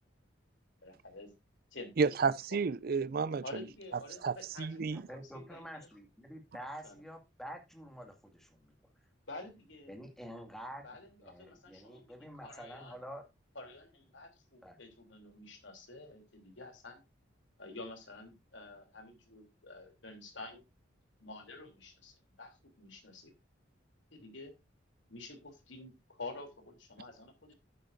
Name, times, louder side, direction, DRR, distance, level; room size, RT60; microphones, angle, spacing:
voice 1, 0.8-1.3 1.7-2.6 3.4-5.9 6.8-7.0 9.3-10.0 10.8-12.1 12.4-13.0 13.5-17.0 17.6-20.6 21.2-23.3 24.1-24.5 25.1-27.5, left 2 dB, 75° left, 3.2 m, -49 dB
voice 2, 2.0-3.4 4.2-5.1, right 5 dB, 50° right, 0.4 m, -31 dB
voice 3, 4.9-8.7 9.9-10.8 11.2-13.2 14.6-14.8, equal, ahead, 2.1 m, -47 dB
12.0 x 9.2 x 2.6 m
head